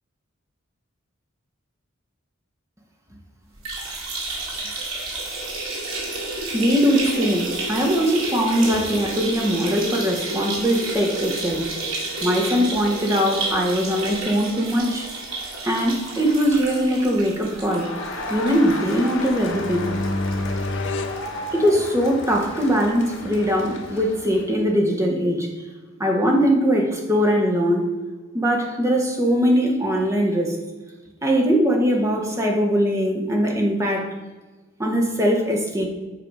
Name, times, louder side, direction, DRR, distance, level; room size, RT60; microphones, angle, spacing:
sound 1, 3.5-18.9 19.3-19.4 19.7-19.8 20.8-20.9, right 2 dB, 75° right, 2.2 m, -30 dB
voice 1, 6.5-11.6 12.2-15.1 15.6-17.9 18.3-19.9 21.5-25.5 26.0-27.9 28.3-30.6 31.2-34.1 34.8-35.9, equal, 15° right, 1 dB, 1.2 m, -21 dB
Crowd, 17.5-24.5, left 1 dB, 80° left, 2.4 m, -34 dB
sound 2, 19.1-22.2, left 2 dB, 55° left, 0.5 m, -29 dB
8.0 x 4.8 x 4.9 m, 1.2 s
head